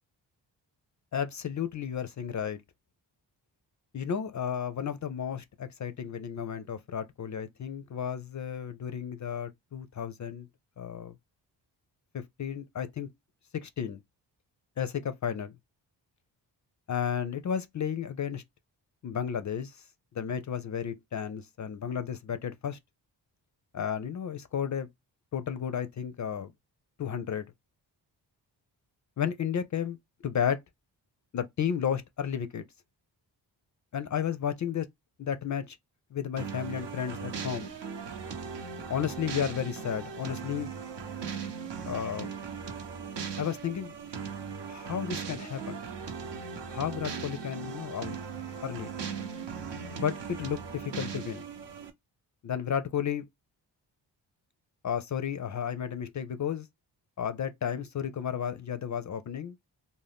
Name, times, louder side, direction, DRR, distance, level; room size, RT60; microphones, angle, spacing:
voice 1, 1.1-2.6 3.9-10.5 10.8-11.1 12.1-13.1 13.5-14.0 14.8-15.5 16.9-18.4 19.0-19.9 20.1-22.8 23.7-24.9 25.3-26.5 27.0-27.5 29.2-30.0 30.2-30.6 31.3-32.6 33.9-34.9 35.2-35.8 36.1-37.7 38.9-40.7 41.9-42.3 43.4-43.9 44.7-45.8 46.7-48.2 48.6-48.9 50.0-51.5 52.4-53.2 54.8-56.7 57.2-59.6, left 8 dB, 40° left, 0.4 m, -33 dB
sound 1, 36.4-51.9, right 6 dB, 65° right, 0.8 m, -38 dB
2.5 x 2.1 x 3.3 m
cardioid pair, 55°, 45 cm